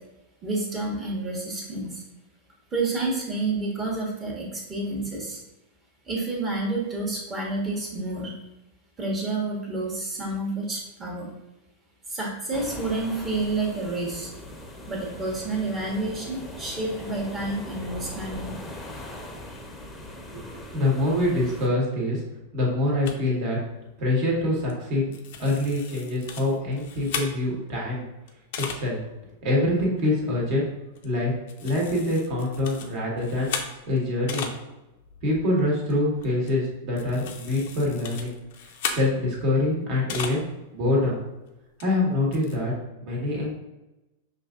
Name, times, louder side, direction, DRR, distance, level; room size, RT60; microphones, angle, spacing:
voice 1, 0.4-2.0 2.7-5.4 6.0-8.3 9.0-11.3 12.1-14.3 14.9-18.5, right 2 dB, 25° right, -3 dB, 1.2 m, -29 dB
sound 1, 12.5-21.7, left 1 dB, 10° left, 0.8 m, -40 dB
voice 2, 20.3-22.2 22.5-23.6 24.0-25.1 25.4-28.0 28.6-29.0 29.4-30.7 31.0-31.3 31.6-33.5 33.9-34.5 35.2-38.3 38.9-40.4 40.7-41.2 41.8-42.7 43.0-43.5, left 1 dB, 50° right, -3 dB, 1.4 m, -25 dB
sound 2, 23.1-23.2 24.7-24.9 25.1-27.7 28.3-28.8 29.4-29.5 29.8-30.1 30.9-31.2 31.5-34.6 34.9-40.5 40.8-40.9 41.8-41.9 42.1-42.6, left 6 dB, 60° left, 0.5 m, -36 dB
5.4 x 2.6 x 2.5 m, 1.0 s
figure-of-eight pair, 95°, 0 cm